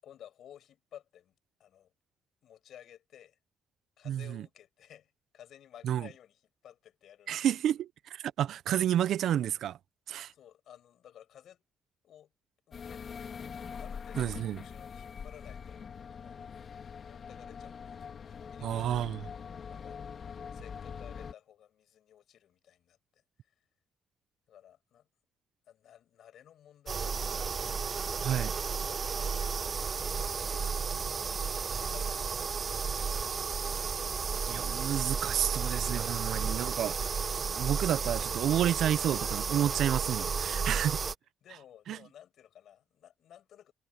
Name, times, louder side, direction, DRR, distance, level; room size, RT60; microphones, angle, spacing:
voice 1, 0.0-1.3 1.6-1.9 2.4-3.4 4.0-7.5 10.3-11.6 12.0-12.3 12.7-15.8 16.1-16.5 17.0-20.0 20.3-23.5 24.5-25.1 25.7-27.7 29.8-30.2 30.7-31.3 31.7-32.5 41.4-43.7, left 10 dB, 70° left, 7.4 m, -56 dB
voice 2, 4.1-4.4 5.8-6.1 7.3-9.8 10.1-10.3 14.2-14.6 18.6-19.2 28.2-28.5 34.5-37.0 37.5-41.0 41.9-42.0, right 11 dB, 75° right, 0.5 m, -30 dB
sound 1, 12.7-21.3, left 6 dB, 50° left, 2.1 m, -43 dB
sound 2, 26.9-41.2, right 5 dB, 40° right, 0.8 m, -33 dB
cardioid pair, 90°, 0 cm